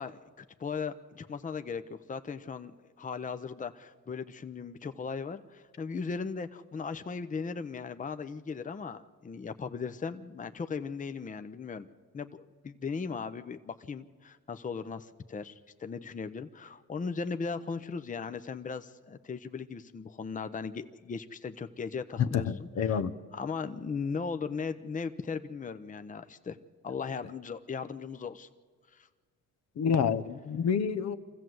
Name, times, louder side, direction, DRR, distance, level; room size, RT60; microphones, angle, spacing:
voice 1, 0.0-11.9 12.1-23.0 23.3-26.6 26.8-28.5 28.9-29.1, left 5 dB, 25° left, 0.8 m, -38 dB
voice 2, 22.2-23.1 29.8-31.2, left 7 dB, 60° left, 1.0 m, -28 dB
24.5 x 15.0 x 7.8 m
cardioid pair, 90°, 30 cm